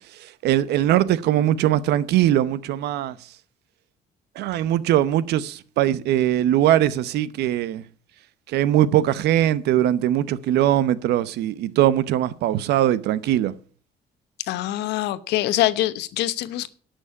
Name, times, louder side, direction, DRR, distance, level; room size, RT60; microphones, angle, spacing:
voice 1, 0.4-3.1 4.4-7.8 8.5-13.5, right 12 dB, 75° right, 0.8 m, -21 dB
voice 2, 14.5-16.7, left 15 dB, 85° left, 0.9 m, -24 dB
11.0 x 6.3 x 8.3 m
cardioid pair, 110°, 17 cm